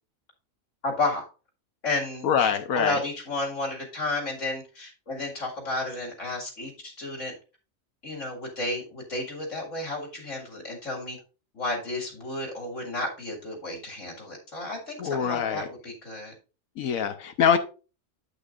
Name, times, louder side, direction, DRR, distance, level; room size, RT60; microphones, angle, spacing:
voice 1, 0.8-1.2 1.8-7.4 8.0-11.2 11.5-16.3, left 2 dB, 60° left, -1 dB, 2.5 m, -32 dB
voice 2, 2.2-3.0 15.0-15.7 16.8-17.6, left 7 dB, 75° left, 9 dB, 1.2 m, -24 dB
9.0 x 8.3 x 2.5 m, 0.33 s
omnidirectional pair, 1.4 m